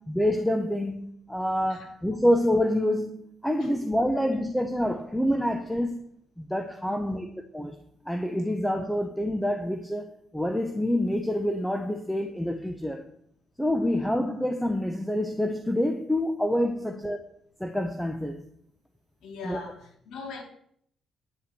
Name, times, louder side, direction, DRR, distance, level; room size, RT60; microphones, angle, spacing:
voice 1, 0.1-6.1 6.4-7.3 7.5-7.7 8.1-13.0 13.6-17.2 17.6-18.4 19.4-19.6, left 1 dB, 5° left, 1.0 m, -27 dB
voice 2, 3.6-4.2 6.8-7.2 16.7-17.0 19.2-20.4, left 4 dB, 75° left, 2.7 m, -42 dB
10.0 x 5.8 x 7.7 m
cardioid pair, 90°, 0 cm